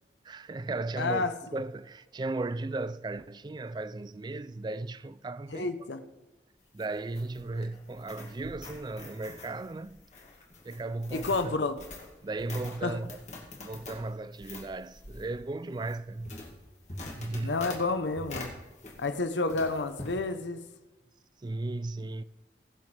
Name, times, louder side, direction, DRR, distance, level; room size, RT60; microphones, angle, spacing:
voice 1, 0.2-1.3 1.5-5.9 6.7-10.0 10.6-11.6 12.2-13.2 13.6-16.4 17.2-17.6 21.4-22.2, right 2 dB, 25° right, 0.3 m, -36 dB
voice 2, 1.0-1.3 5.5-6.0 11.1-11.8 12.8-13.0 17.4-18.5 19.0-20.6, left 3 dB, 85° left, 0.8 m, -30 dB
sound 1, 6.6-19.2 19.5-20.2, left 2 dB, 40° left, 2.2 m, -45 dB
21.5 x 7.2 x 3.4 m
head